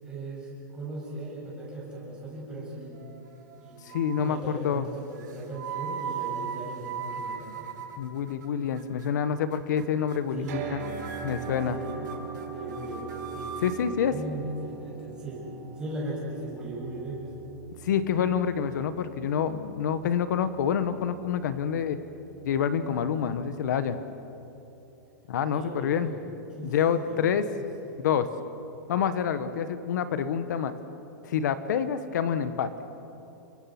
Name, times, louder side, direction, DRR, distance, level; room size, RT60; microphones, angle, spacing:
voice 1, 0.0-2.9 3.6-3.8 4.2-7.7 10.3-10.8 11.7-12.1 12.5-13.5 14.1-15.4 15.8-17.3 25.5-26.2 26.5-26.8 27.0-27.3 27.9-28.0, right 1 dB, 10° right, -5 dB, 6.9 m, -38 dB
sound 1, 2.9-3.5 3.9-4.4 5.2-8.5 8.8-9.1 9.5-9.8 10.1-10.2 10.4-10.5 10.8-13.8, right 7 dB, 75° right, 3.9 m, -38 dB
voice 2, 3.8-4.9 8.0-10.8 11.2-11.8 13.6-14.1 17.8-22.0 22.4-24.0 25.3-26.1 26.6-27.5 28.0-28.3 28.9-30.7 31.2-32.7, left 8 dB, 70° left, 11 dB, 1.4 m, -27 dB
sound 2, 10.5-24.6, right 7 dB, 60° right, 4.8 m, -42 dB
29.5 x 23.0 x 6.2 m, 2.9 s
supercardioid pair, 170°, 10 cm